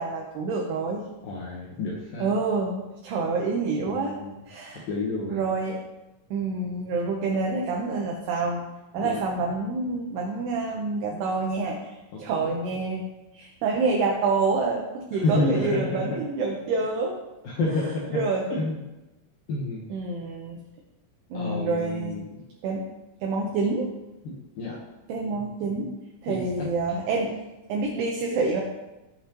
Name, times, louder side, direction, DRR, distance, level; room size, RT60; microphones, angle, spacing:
voice 1, 0.0-1.1 2.2-4.2 4.5-4.9 5.3-5.8 6.3-8.6 8.9-13.1 13.3-17.2 17.7-17.8 18.1-18.4 19.9-20.6 21.3-22.2 22.6-22.8 23.2-23.9 25.1-25.9 26.2-27.3 27.7-28.6, right 3 dB, 75° right, 0 dB, 2.5 m, -27 dB
voice 2, 1.2-2.3 3.8-4.4 4.9-5.4 9.0-9.2 11.1-11.2 15.1-16.2 17.4-18.2 18.5-18.8 19.5-19.8 21.3-22.2 24.2-24.8 25.3-25.4 25.8-25.9 26.3-26.7, left 2 dB, 75° left, -3 dB, 2.0 m, -29 dB
17.0 x 5.7 x 3.0 m, 1.0 s
omnidirectional pair, 5.7 m